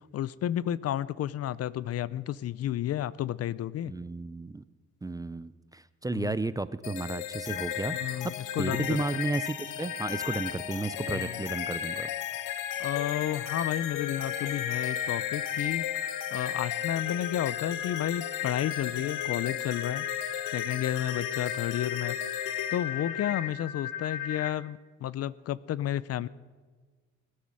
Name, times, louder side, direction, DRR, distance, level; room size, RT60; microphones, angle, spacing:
voice 1, 0.1-3.9 6.1-6.4 7.9-9.0 11.1-11.3 12.8-15.9 16.3-20.1 20.5-22.2 22.7-26.3, left 11 dB, 55° left, 20 dB, 0.5 m, -32 dB
voice 2, 3.9-4.6 5.0-12.1, right 2 dB, 10° right, 15 dB, 0.4 m, -33 dB
sound 1, 6.8-24.5, left 10 dB, 90° left, 0.9 m, -34 dB
18.5 x 9.6 x 6.3 m, 1.4 s
cardioid pair, 90°, 30 cm